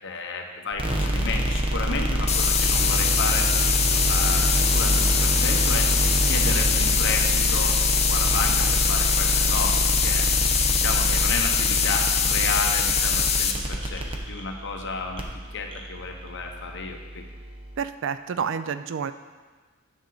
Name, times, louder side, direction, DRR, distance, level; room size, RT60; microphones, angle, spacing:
voice 1, 0.0-3.5 3.9-7.8 8.1-15.2 15.5-17.2, left 3 dB, 65° left, 2 dB, 1.0 m, -32 dB
sound 1, 0.7-17.8, right 1 dB, 25° right, 0.9 m, -26 dB
sound 2, 2.3-13.5, left 7 dB, 30° left, 0.6 m, -23 dB
voice 2, 17.8-19.1, right 6 dB, 65° right, 11 dB, 0.4 m, -29 dB
10.0 x 6.4 x 4.0 m, 1.4 s
head